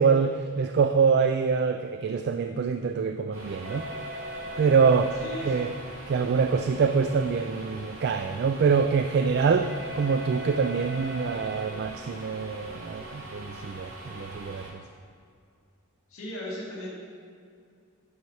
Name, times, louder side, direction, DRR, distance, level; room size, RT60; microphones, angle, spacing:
voice 1, 0.0-3.9 4.6-5.7 6.1-9.7 9.9-14.8, right 5 dB, 50° right, 7 dB, 0.3 m, -25 dB
sound 1, 3.3-14.7, equal, 70° right, 2.4 m, -39 dB
voice 2, 5.2-5.6 16.1-17.0, left 1 dB, 70° left, -6 dB, 2.1 m, -36 dB
10.5 x 5.6 x 4.8 m, 2.3 s
head